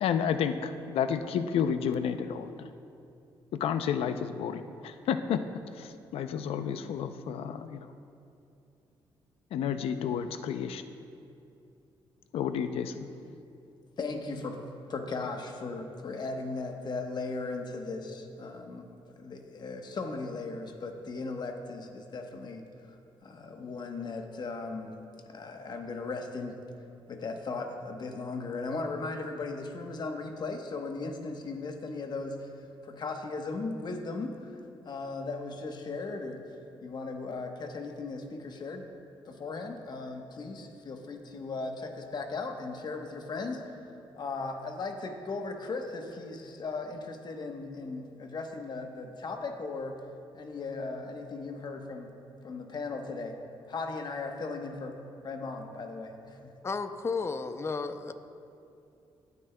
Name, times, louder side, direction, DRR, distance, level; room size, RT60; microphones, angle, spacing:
voice 1, 0.0-2.7 3.5-5.4 5.8-7.9 9.5-10.8 12.3-13.1, left 8 dB, 85° left, 10 dB, 0.5 m, -31 dB
voice 2, 14.0-14.6 14.9-23.0 23.2-24.9 25.3-26.5 27.1-32.5 32.8-36.4 36.8-38.8 39.2-43.9 44.2-50.0 50.3-52.1 52.4-53.3 53.7-54.9 55.2-56.5, left 3 dB, 50° left, 4 dB, 1.0 m, -37 dB
voice 3, 56.6-58.1, left 4 dB, 30° left, 10 dB, 0.5 m, -33 dB
17.5 x 9.4 x 2.2 m, 2.7 s
cardioid pair, 100°, 10 cm